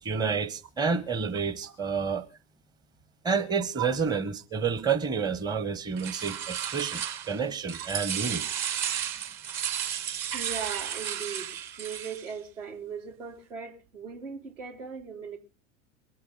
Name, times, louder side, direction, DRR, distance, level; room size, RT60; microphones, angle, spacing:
voice 1, 0.0-2.2 3.2-8.5, right 5 dB, 10° right, 0.8 m, -29 dB
sound 1, 6.0-7.4 7.7-12.3, right 9 dB, 45° right, 1.8 m, -33 dB
voice 2, 10.3-15.4, right 7 dB, 70° right, 3.5 m, -38 dB
23.5 x 8.4 x 3.9 m
figure-of-eight pair, 80°, 38 cm